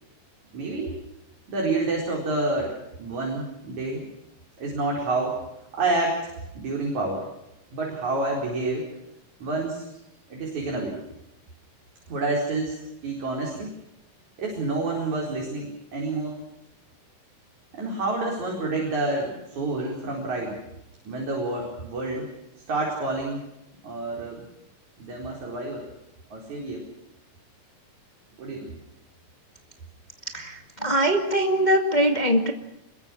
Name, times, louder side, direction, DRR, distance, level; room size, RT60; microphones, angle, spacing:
voice 1, 0.5-0.9 1.5-4.0 4.6-5.3 5.7-7.2 7.7-8.9 9.4-9.8 10.3-11.0 12.1-12.8 13.0-13.7 14.4-16.4 17.7-20.6 21.1-22.3 22.7-23.4 23.8-24.4 25.0-25.8 26.3-26.8 28.4-28.7, right 2 dB, 55° right, -2 dB, 5.8 m, -28 dB
voice 2, 30.2-32.5, right 1 dB, 20° left, 4 dB, 1.4 m, -22 dB
26.0 x 22.5 x 6.3 m, 0.88 s
omnidirectional pair, 4.1 m